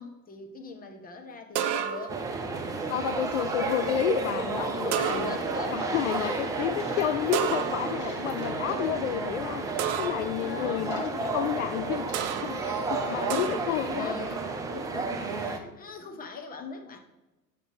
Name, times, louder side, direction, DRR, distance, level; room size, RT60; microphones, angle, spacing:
voice 1, 0.0-2.2 5.0-7.0 8.5-9.0 9.9-11.1 13.3-14.4 14.7-17.0, left 4 dB, 20° left, 4 dB, 1.2 m, -42 dB
sound 1, 1.5-2.3 4.9-5.6 7.3-8.1 9.8-10.4 12.1-12.6 13.3-13.8, right 9 dB, 50° right, 0.7 m, -31 dB
sound 2, 2.1-15.6, right 3 dB, 10° right, 0.4 m, -32 dB
voice 2, 2.9-5.4 5.7-14.3, left 11 dB, 50° left, 10 dB, 0.5 m, -31 dB
sound 3, 6.7-7.4 7.8-9.3 9.6-9.9 10.4-11.2 11.5-11.7 12.1-12.8, left 3 dB, 35° left, 1.9 m, -52 dB
6.5 x 6.4 x 4.8 m, 1.0 s
figure-of-eight pair, 80°, 48 cm